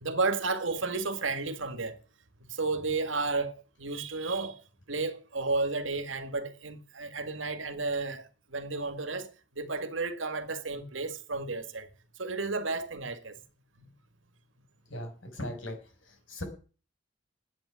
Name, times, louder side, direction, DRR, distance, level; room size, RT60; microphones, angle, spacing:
voice 1, 0.0-2.0 2.5-4.6 4.9-11.9 12.2-13.4 13.8-13.9, right 3 dB, 80° right, 1.9 m, -32 dB
voice 2, 14.9-15.8 16.3-16.4, left 1 dB, 85° left, 5.5 m, -37 dB
11.0 x 8.8 x 9.8 m
head